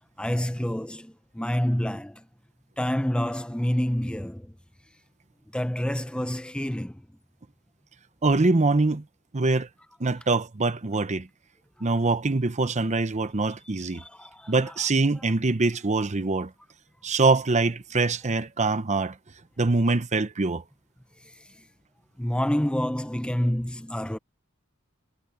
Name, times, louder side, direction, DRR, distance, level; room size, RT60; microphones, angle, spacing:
voice 1, 0.2-2.3 2.8-4.5 5.5-7.1 13.9-14.5 21.2-21.3 22.2-24.2, equal, 5° left, 0.8 m, -28 dB
voice 2, 8.2-9.0 9.3-9.7 10.0-11.3 11.8-14.0 14.5-16.5 17.0-19.2 19.6-20.6, right 3 dB, 35° right, 0.8 m, -24 dB
head